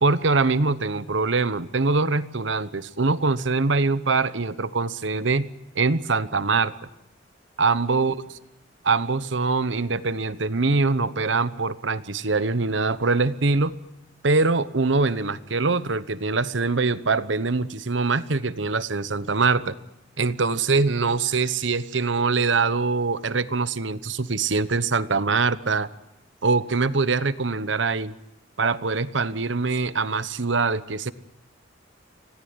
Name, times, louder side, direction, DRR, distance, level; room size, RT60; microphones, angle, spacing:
voice 1, 0.0-6.7 7.6-8.1 8.9-13.8 14.2-19.7 20.2-25.9 26.4-28.1 28.6-31.1, right 4 dB, 70° right, 15 dB, 1.0 m, -23 dB
26.0 x 17.5 x 9.6 m, 0.87 s
head